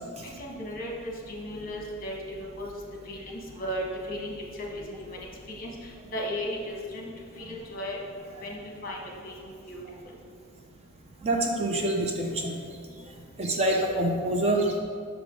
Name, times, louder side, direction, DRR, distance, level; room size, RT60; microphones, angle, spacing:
voice 1, 0.4-0.9 1.3-2.7 3.1-3.3 3.6-5.2 5.6-5.7 6.1-7.1 7.4-8.0 8.4-9.0 9.2-9.3 9.7-9.8, equal, 40° left, -1 dB, 1.2 m, -35 dB
voice 2, 11.2-12.5 13.4-14.8, right 1 dB, 30° right, 1 dB, 0.5 m, -26 dB
5.9 x 5.1 x 5.2 m, 2.2 s
head